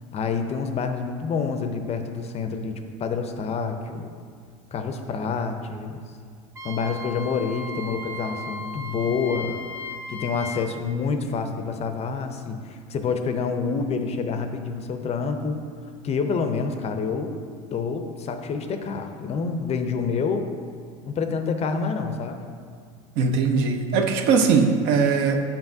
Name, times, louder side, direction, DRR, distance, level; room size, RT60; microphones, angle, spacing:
voice 1, 0.1-4.1 4.7-6.0 6.6-9.6 10.1-15.6 16.0-17.4 17.7-20.5 21.0-22.4, left 5 dB, 35° left, 7 dB, 0.5 m, -27 dB
Wind instrument woodwind instrument, 6.6-10.7, left 2 dB, 15° right, 0.5 m, -36 dB
voice 2, 23.2-25.4, right 5 dB, 60° right, 5 dB, 0.6 m, -20 dB
7.1 x 5.2 x 2.6 m, 2.1 s
hypercardioid pair, 90°, 18 cm